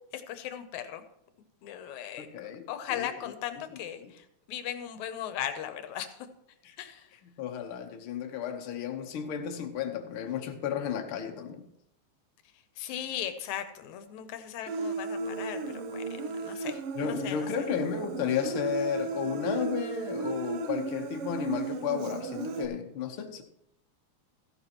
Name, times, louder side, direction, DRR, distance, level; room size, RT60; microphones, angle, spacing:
voice 1, 0.1-1.0 1.6-6.3 6.8-7.1 12.8-16.0 16.4-17.5, left 10 dB, 80° left, 9 dB, 2.2 m, -38 dB
voice 2, 2.2-3.1 3.7-4.1 6.6-6.8 7.4-11.6 16.9-23.4, left 8 dB, 60° left, 4 dB, 1.6 m, -33 dB
Human voice, 14.7-22.7, right 4 dB, 75° right, 1.3 m, -35 dB
14.5 x 11.0 x 3.0 m, 0.77 s
omnidirectional pair, 3.3 m